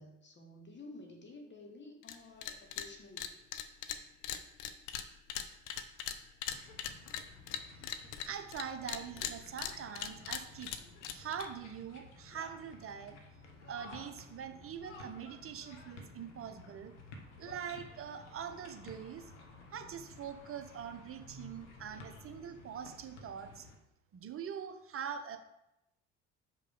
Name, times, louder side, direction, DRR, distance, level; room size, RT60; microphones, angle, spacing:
voice 1, 0.0-3.3, left 2 dB, 30° left, 3 dB, 1.8 m, -52 dB
sound 1, 2.0-2.2 2.4-2.9 3.2-8.6 8.9-11.5, left 10 dB, 60° left, 0.7 m, -39 dB
sound 2, 6.5-23.8, left 2 dB, 80° left, 1.0 m, -54 dB
voice 2, 7.6-10.7 11.1-13.2 13.7-16.9 17.4-19.3 19.7-23.7 24.1-25.4, right 8 dB, 40° right, 8 dB, 0.9 m, -43 dB
6.2 x 5.3 x 3.8 m, 0.88 s
figure-of-eight pair, 55°, 35 cm